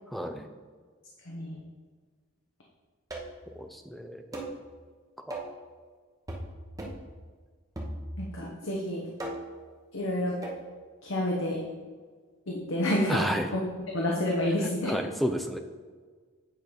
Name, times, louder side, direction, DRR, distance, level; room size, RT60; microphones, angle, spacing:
voice 1, 0.1-0.5 3.6-4.2 5.2-5.3 13.1-13.5 14.8-15.6, equal, ahead, 6 dB, 0.5 m, -31 dB
voice 2, 1.3-1.6 8.2-9.0 9.9-10.3 11.0-11.6 12.5-13.2 13.9-14.9, left 1 dB, 70° left, -3 dB, 1.1 m, -29 dB
sound 1, 3.1-3.5 4.3-4.6 5.3-5.6 6.3-6.5 6.8-7.1 7.8-8.3 9.2-9.6 10.4-10.7, right 1 dB, 15° right, 1.0 m, -37 dB
8.8 x 4.0 x 5.0 m, 1.5 s
head